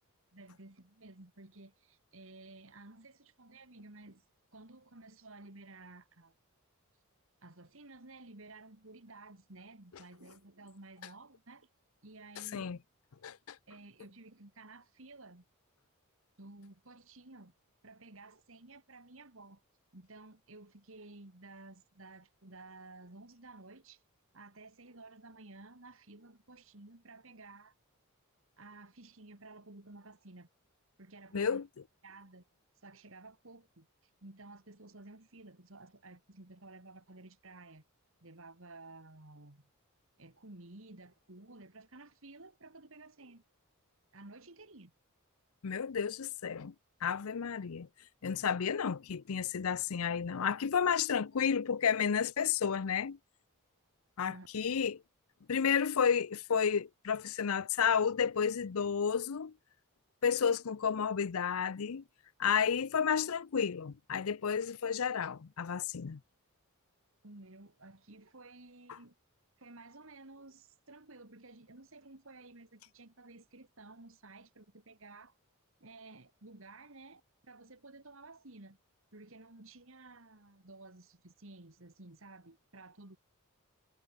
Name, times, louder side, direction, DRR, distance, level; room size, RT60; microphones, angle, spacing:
voice 1, 0.3-4.2 4.5-6.3 7.4-11.7 12.0-12.8 13.7-15.5 16.4-17.5 17.8-19.6 19.9-24.0 24.3-27.7 28.6-30.5 31.0-31.7 32.0-32.5 32.8-37.8 38.2-39.7 40.2-43.4 44.1-44.9 54.2-54.5 67.2-69.1 69.6-75.4 75.8-78.8 79.1-83.2, right 2 dB, 60° right, 2.4 m, -54 dB
voice 2, 13.2-13.6 31.3-31.6 45.6-46.7 47.0-47.9 48.2-53.2 54.2-55.0 55.5-59.5 60.2-62.0 62.4-66.2, left 7 dB, 70° left, 0.5 m, -31 dB
head